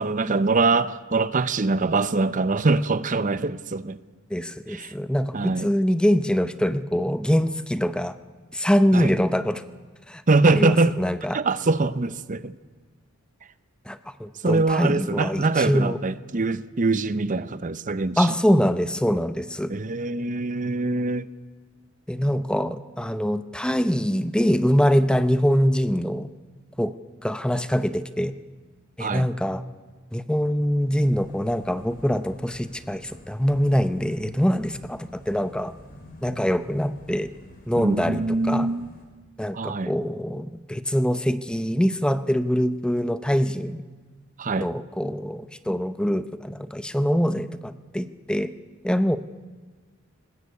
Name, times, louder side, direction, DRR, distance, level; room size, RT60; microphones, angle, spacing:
voice 1, 0.0-4.0 4.7-4.9 5.3-5.7 8.9-9.1 10.3-11.0 11.3-12.5 14.4-18.3 19.7-21.3 29.0-29.3 37.8-38.9 39.5-39.9 44.4-44.7, right 3 dB, 40° right, 0.7 m, -23 dB
voice 2, 4.3-8.1 8.5-9.6 10.1-10.2 10.5-11.4 13.9-16.0 18.2-19.7 22.1-26.3 26.8-26.9 27.2-28.3 29.0-29.6 30.1-35.7 36.2-37.3 37.7-38.7 39.4-43.8 44.6-48.5 48.8-49.2, equal, 5° left, 0.7 m, -24 dB
sound 1, 31.0-39.0, left 1 dB, 45° left, 3.8 m, -48 dB
22.0 x 19.5 x 8.3 m
head